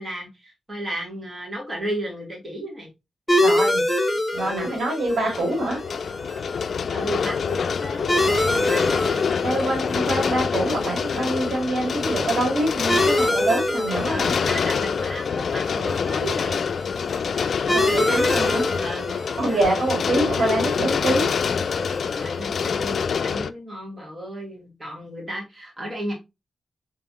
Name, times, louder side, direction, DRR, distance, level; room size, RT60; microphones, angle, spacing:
voice 1, 0.0-2.9 3.3-3.4 4.4-4.8 5.2-5.5 6.9-8.9 13.0-13.1 13.8-16.6 17.6-18.3 18.8-19.8 20.3-21.1 22.1-26.1, equal, 25° right, 0 dB, 2.6 m, -34 dB
sound 1, 3.3-22.4, left 1 dB, 5° left, 2.0 m, -27 dB
voice 2, 3.4-3.8 4.3-5.8 9.4-14.4 17.7-18.6 19.4-21.3, right 1 dB, 80° right, -1 dB, 2.0 m, -25 dB
sound 2, 5.1-23.5, left 6 dB, 70° left, 0.3 m, -26 dB
3.9 x 3.6 x 2.9 m, 0.23 s
cardioid pair, 55°, 0 cm